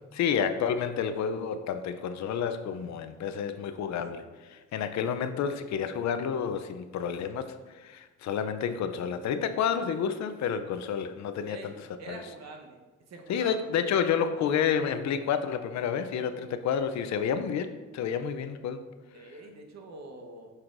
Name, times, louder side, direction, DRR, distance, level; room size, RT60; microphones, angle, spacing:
voice 1, 0.1-4.2 4.5-11.6 12.1-12.2 13.3-18.8, left 7 dB, 65° left, 10 dB, 0.5 m, -30 dB
voice 2, 12.0-12.8 13.1-13.6 19.1-20.5, right 3 dB, 60° right, 3 dB, 1.1 m, -45 dB
7.8 x 5.7 x 2.6 m, 1.3 s
cardioid pair, 90°, 30 cm